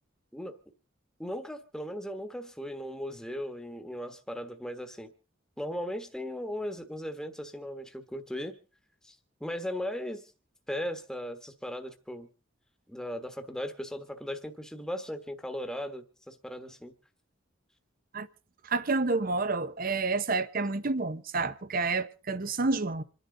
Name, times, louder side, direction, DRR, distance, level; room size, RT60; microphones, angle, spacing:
voice 1, 1.2-5.1 5.6-8.5 9.0-9.1 9.4-10.3 10.7-12.3 12.9-16.9, equal, 5° left, 1.3 m, -37 dB
voice 2, 18.6-23.0, right 3 dB, 45° right, 0.9 m, -29 dB
27.5 x 10.5 x 3.9 m
head